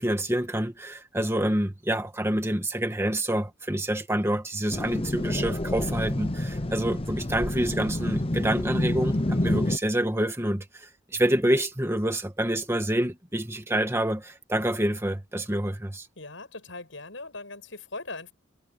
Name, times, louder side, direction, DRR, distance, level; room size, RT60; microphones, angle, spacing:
voice 1, 0.0-16.1, right 1 dB, 15° right, 1.7 m, -27 dB
sound 1, 4.7-9.8, left 1 dB, 30° left, 0.9 m, -28 dB
voice 2, 16.2-18.3, left 3 dB, 70° left, 7.5 m, -40 dB
head